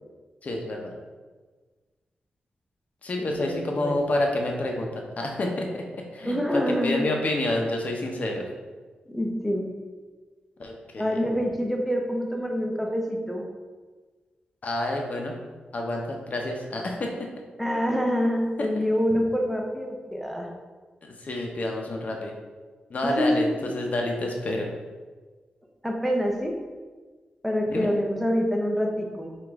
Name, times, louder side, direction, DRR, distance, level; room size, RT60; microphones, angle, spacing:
voice 1, 0.4-0.9 3.0-4.9 5.2-5.8 6.1-8.5 10.6-11.2 14.6-15.3 15.7-17.3 18.6-18.7 21.2-22.3 22.9-24.7 27.7-27.9, left 1 dB, 45° left, 1 dB, 0.6 m, -28 dB
voice 2, 3.2-4.0 6.2-7.1 9.1-9.7 11.0-13.4 17.6-20.5 23.0-23.6 25.8-26.6 27.4-29.3, equal, ahead, 1 dB, 0.6 m, -26 dB
4.9 x 2.4 x 3.5 m, 1.4 s
wide cardioid pair, 120°, 3 cm